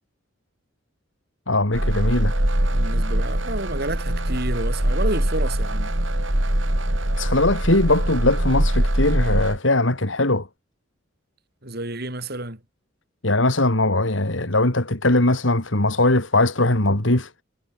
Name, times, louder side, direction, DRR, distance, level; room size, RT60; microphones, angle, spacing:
voice 1, 1.5-2.3 7.2-10.5 13.2-17.3, left 2 dB, 75° left, 3.3 m, -20 dB
sound 1, 1.7-9.6, right 1 dB, 80° right, 3.6 m, -22 dB
voice 2, 2.7-5.9 11.6-12.6, right 2 dB, 55° right, 6.9 m, -30 dB
head